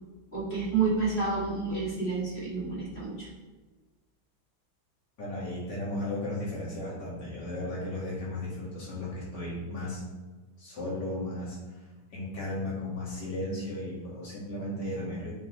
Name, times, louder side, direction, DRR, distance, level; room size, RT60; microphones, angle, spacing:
voice 1, 0.3-3.3, right 4 dB, 25° left, -7 dB, 2.1 m, -29 dB
voice 2, 5.2-10.0 10.6-11.6 12.1-15.3, left 1 dB, 55° left, -6 dB, 2.6 m, -35 dB
8.3 x 4.5 x 3.2 m, 1.3 s
omnidirectional pair, 2.2 m